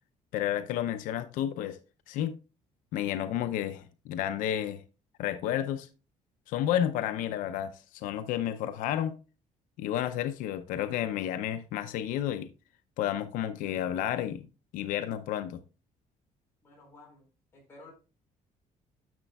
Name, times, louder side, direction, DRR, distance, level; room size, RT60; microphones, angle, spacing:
voice 1, 0.3-1.8 2.1-2.4 2.9-4.8 5.2-5.9 6.5-9.2 9.8-12.5 13.0-14.5 14.7-15.6, left 11 dB, 90° left, 0.6 m, -31 dB
voice 2, 16.6-17.3 17.5-17.9, left 2 dB, 20° left, 4.2 m, -53 dB
10.5 x 6.8 x 2.3 m
cardioid pair, 175°, 13 cm